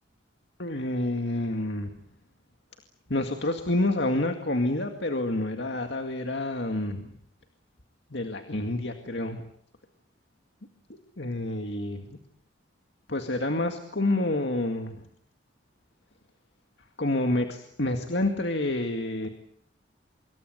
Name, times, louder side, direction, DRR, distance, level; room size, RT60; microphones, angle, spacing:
voice 1, 0.6-1.9 3.1-7.1 8.1-9.4 10.9-12.2 13.1-15.0 17.0-19.3, left 1 dB, 65° left, 6 dB, 2.1 m, -28 dB
26.0 x 23.0 x 8.0 m, 0.68 s
head